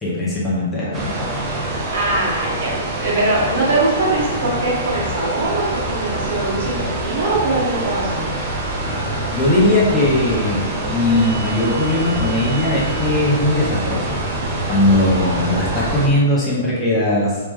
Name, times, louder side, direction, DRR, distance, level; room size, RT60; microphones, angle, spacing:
voice 1, 0.0-1.3 9.3-14.2 14.7-17.4, left 1 dB, 10° left, -7 dB, 0.9 m, -19 dB
sound 1, 0.9-16.1, right 2 dB, 25° right, 0.6 m, -25 dB
voice 2, 1.9-8.3, right 2 dB, 60° right, -6 dB, 1.4 m, -22 dB
3.1 x 2.8 x 3.6 m, 1.2 s
hypercardioid pair, 145°, 0 cm